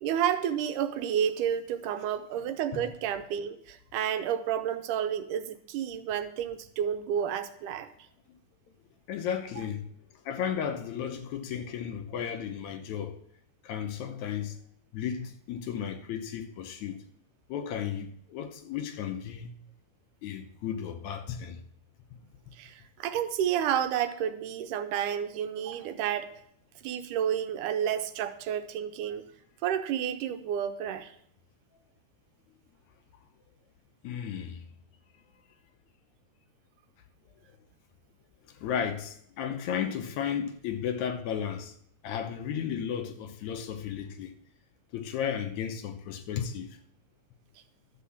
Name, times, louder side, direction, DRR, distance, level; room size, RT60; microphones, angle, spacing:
voice 1, 0.0-7.9 22.5-26.4 26.8-29.2 29.6-31.1, right 9 dB, 85° right, 2.3 m, -30 dB
voice 2, 9.1-9.9 10.3-13.2 13.6-14.6 14.9-17.0 17.5-19.5 20.2-21.6 34.0-34.6 38.5-41.7 42.0-44.3 44.9-46.8, left 8 dB, 75° left, 2.1 m, -34 dB
12.0 x 5.3 x 7.0 m
omnidirectional pair, 3.6 m